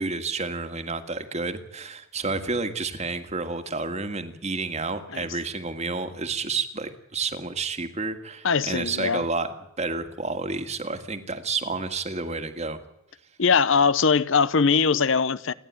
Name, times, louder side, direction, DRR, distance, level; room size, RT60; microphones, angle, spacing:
voice 1, 0.0-12.8, right 3 dB, 30° right, 1.8 m, -30 dB
voice 2, 8.4-9.2 13.4-15.5, left 5 dB, 65° left, 0.8 m, -21 dB
29.0 x 11.5 x 9.4 m
head